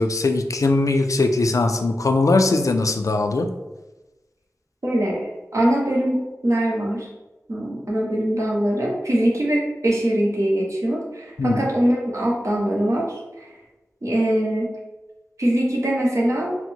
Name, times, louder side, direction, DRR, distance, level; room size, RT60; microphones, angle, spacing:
voice 1, 0.0-3.5 11.4-11.7, left 3 dB, 75° left, 6 dB, 0.4 m, -20 dB
voice 2, 4.8-7.1 7.5-13.5 14.0-14.7 15.4-16.6, right 1 dB, 65° right, -3 dB, 1.1 m, -22 dB
4.1 x 2.1 x 4.4 m, 1.1 s
wide cardioid pair, 65°, 6 cm